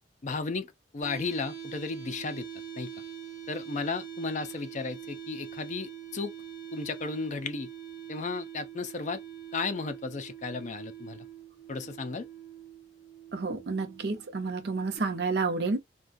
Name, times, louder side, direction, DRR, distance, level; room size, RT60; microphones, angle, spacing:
voice 1, 0.2-2.5 2.8-2.9 3.5-6.3 6.7-7.7 8.1-9.2 9.5-11.3 11.7-12.3, left 4 dB, 45° left, 0.4 m, -34 dB
sound 1, 1.0-15.0, right 9 dB, 25° left, 1.1 m, -44 dB
voice 2, 13.3-15.8, right 3 dB, 65° right, 0.6 m, -30 dB
2.4 x 2.2 x 2.4 m
head